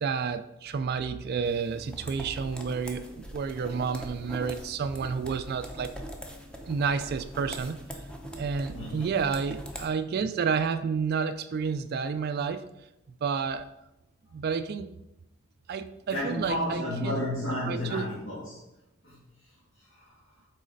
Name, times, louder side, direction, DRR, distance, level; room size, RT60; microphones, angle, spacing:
voice 1, 0.0-5.9 6.7-8.0 8.4-12.6 13.1-13.7 14.3-14.9 15.7-17.2 17.7-18.1, right 5 dB, 50° right, 11 dB, 0.3 m, -30 dB
sound 1, 1.4-9.9, equal, 5° left, 0.7 m, -42 dB
voice 2, 8.7-9.1 16.1-18.6 19.0-20.2, left 1 dB, 60° left, -8 dB, 1.8 m, -33 dB
6.2 x 4.1 x 5.2 m, 0.91 s
head